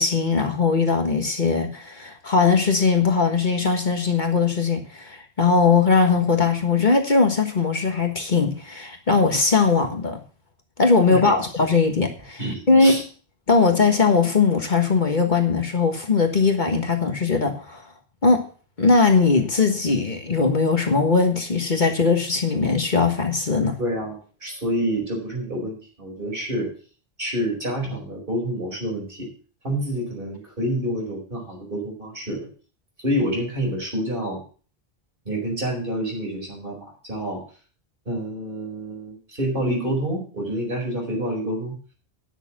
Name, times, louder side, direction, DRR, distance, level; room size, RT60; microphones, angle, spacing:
voice 1, 0.0-10.2 10.8-12.4 12.7-13.0 13.5-17.8 18.2-18.4 18.8-23.8, left 4 dB, 50° left, 4 dB, 1.6 m, -20 dB
voice 2, 11.1-11.4 12.4-13.0 23.8-26.7 27.2-29.3 29.6-32.5 33.0-34.4 35.2-37.4 38.0-41.7, equal, 55° right, 0 dB, 5.1 m, -28 dB
10.0 x 6.6 x 7.3 m, 0.40 s
omnidirectional pair, 1.1 m